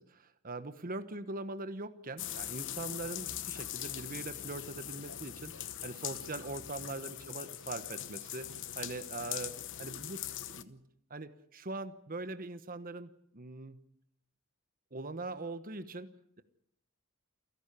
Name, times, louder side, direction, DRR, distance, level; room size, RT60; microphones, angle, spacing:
voice 1, 0.0-10.2 10.6-10.8 11.1-13.8 14.9-16.1, right 2 dB, 40° right, 11 dB, 1.1 m, -42 dB
sound 1, 2.2-10.6, left 12 dB, 60° left, 1.1 m, -41 dB
28.5 x 11.5 x 9.9 m, 0.75 s
head